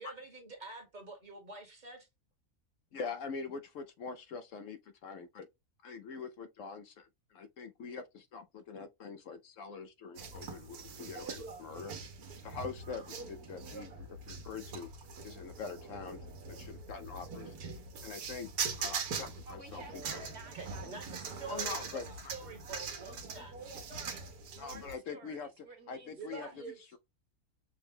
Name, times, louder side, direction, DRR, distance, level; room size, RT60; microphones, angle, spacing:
voice 1, 0.0-2.1 20.5-22.0 22.3-23.6 26.1-26.8, right 4 dB, 35° right, 1.2 m, -47 dB
voice 2, 2.9-5.5 5.8-11.9 12.4-14.9 15.2-17.5 18.0-18.5 18.8-20.3 21.5-22.3 24.6-25.5 25.9-27.0, left 5 dB, 70° left, 0.9 m, -44 dB
sound 1, 10.2-24.9, right 5 dB, 85° right, 1.4 m, -42 dB
voice 3, 19.4-22.2 23.6-26.6, right 2 dB, 50° right, 1.4 m, -53 dB
6.0 x 2.2 x 3.5 m
omnidirectional pair, 1.6 m